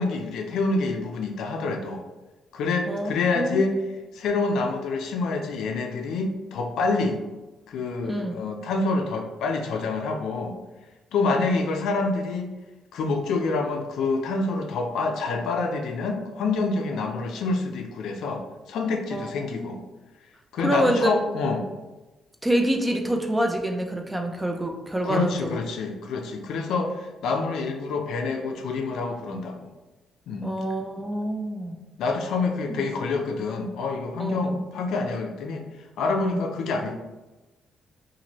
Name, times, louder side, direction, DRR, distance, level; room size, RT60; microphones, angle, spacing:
voice 1, 0.0-2.0 2.5-3.8 4.1-7.2 7.7-10.5 11.1-12.5 12.9-18.4 18.7-19.8 20.5-21.7 25.0-29.7 30.3-30.5 32.0-35.6 36.0-36.9, left 3 dB, 80° left, 3 dB, 0.4 m, -27 dB
voice 2, 8.0-8.4 11.3-11.6 19.1-19.8 20.6-21.1 22.4-25.6 30.4-31.8 32.8-32.9 34.2-34.6 36.2-36.5, right 1 dB, 10° right, 3 dB, 0.4 m, -27 dB
2.7 x 2.5 x 3.0 m, 1.1 s
cardioid pair, 90°, 0 cm